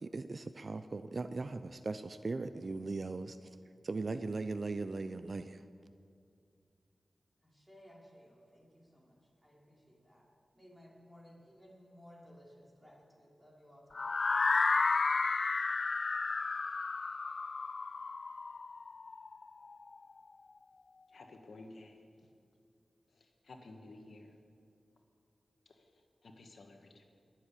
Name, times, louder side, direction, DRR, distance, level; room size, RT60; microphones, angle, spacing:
voice 1, 0.0-3.5 3.8-5.6, right 3 dB, 55° right, 11 dB, 0.6 m, -39 dB
voice 2, 7.4-10.2 10.5-14.1, equal, 10° right, -4 dB, 4.6 m, -59 dB
sound 1, 13.9-19.9, left 4 dB, 60° left, 0.3 m, -32 dB
voice 3, 21.1-21.9 23.5-24.3 26.4-27.0, left 2 dB, 80° left, 3 dB, 1.6 m, -52 dB
21.0 x 7.6 x 8.5 m, 2.3 s
cardioid pair, 60°, 0 cm